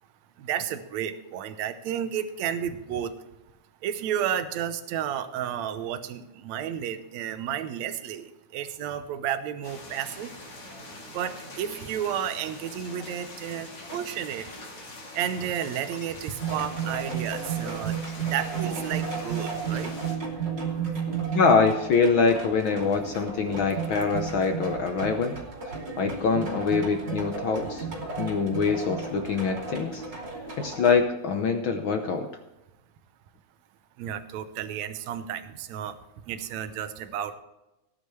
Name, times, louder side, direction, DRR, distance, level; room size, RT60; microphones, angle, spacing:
voice 1, 0.4-3.1 3.8-8.3 8.5-10.3 11.1-14.4 15.1-18.0 18.2-19.9 34.0-36.0 36.3-37.3, right 9 dB, 75° right, 10 dB, 2.1 m, -32 dB
sound 1, 9.6-20.2, left 2 dB, 40° left, 2.7 m, -43 dB
sound 2, 16.4-31.0, right 6 dB, 35° right, 3.5 m, -33 dB
voice 2, 21.3-25.4 26.0-27.8 28.2-30.0 30.6-32.3, left 5 dB, 70° left, 6 dB, 1.2 m, -24 dB
18.0 x 10.5 x 3.2 m, 0.96 s
omnidirectional pair, 3.4 m